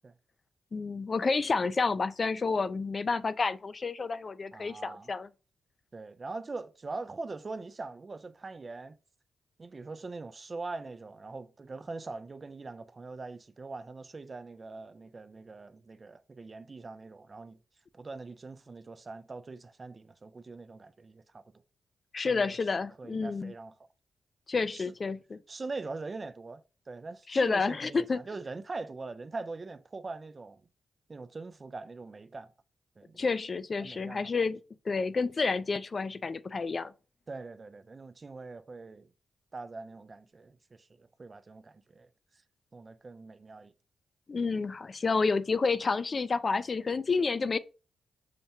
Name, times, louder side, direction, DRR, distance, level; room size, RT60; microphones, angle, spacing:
voice 1, 0.7-5.3 22.1-23.5 24.5-25.4 27.3-28.2 33.2-34.6 34.9-36.9 44.3-47.6, left 4 dB, 50° left, 0.3 m, -29 dB
voice 2, 4.5-5.1 5.9-9.0 9.6-17.6 17.9-21.4 22.2-22.6 23.0-23.7 24.5-24.9 25.5-30.6 31.1-32.5 33.0-33.3 33.8-34.3 37.3-39.1 39.5-42.1 42.7-43.7, right 3 dB, 40° right, 0.4 m, -42 dB
5.7 x 2.1 x 2.7 m
supercardioid pair, 50°, 0 cm